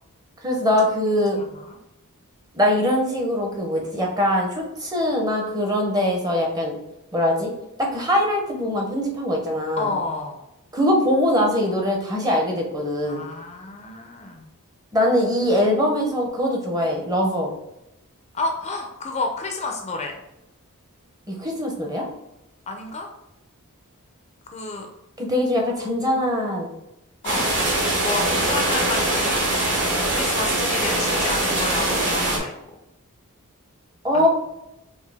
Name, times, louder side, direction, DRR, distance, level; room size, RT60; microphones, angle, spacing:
voice 1, 0.4-1.4 2.5-6.8 7.1-7.5 7.8-9.9 10.7-13.2 14.9-17.5 21.3-22.1 25.2-26.7 34.0-34.3, left 1 dB, 15° right, 1 dB, 0.7 m, -22 dB
voice 2, 1.3-1.8 9.8-10.4 13.0-14.5 18.3-20.1 22.7-23.1 24.5-24.9 27.2-27.5 28.0-29.5 30.1-32.5 34.1-34.3, left 3 dB, 30° left, 3 dB, 0.5 m, -30 dB
sound 1, 27.2-32.4, right 1 dB, 55° right, 1.2 m, -22 dB
4.6 x 2.6 x 3.4 m, 0.89 s
head